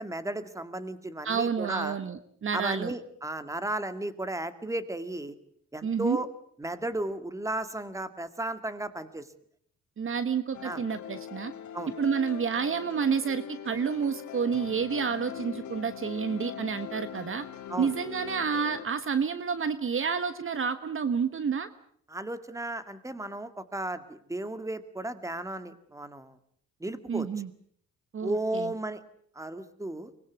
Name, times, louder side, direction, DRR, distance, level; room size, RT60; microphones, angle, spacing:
voice 1, 0.0-2.0 2.5-5.3 5.7-6.3 6.6-9.3 10.6-10.8 11.7-11.9 17.7-17.9 22.1-26.4 26.8-27.3 28.2-29.0 29.4-30.1, right 1 dB, 10° right, 11 dB, 2.1 m, -34 dB
voice 2, 1.2-2.9 5.8-6.2 10.0-11.5 12.0-17.4 17.8-21.7 27.1-27.5 28.1-28.7, right 6 dB, 45° right, 12 dB, 1.3 m, -29 dB
sound 1, 10.5-18.8, left 9 dB, 70° left, 2.1 m, -41 dB
24.0 x 21.0 x 8.3 m, 0.63 s
cardioid pair, 90°, 30 cm